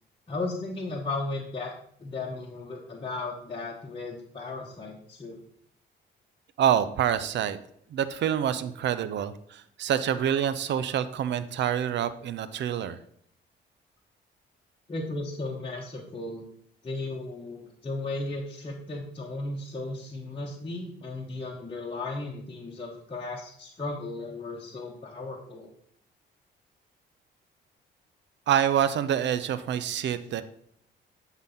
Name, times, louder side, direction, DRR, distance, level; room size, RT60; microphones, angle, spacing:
voice 1, 0.3-5.4 14.9-16.4 16.8-25.7, left 2 dB, 25° left, -3 dB, 1.2 m, -35 dB
voice 2, 6.6-7.6 7.9-13.0 28.5-30.4, right 9 dB, 65° right, 13 dB, 0.6 m, -27 dB
8.7 x 4.1 x 5.5 m, 0.66 s
cardioid pair, 90°, 20 cm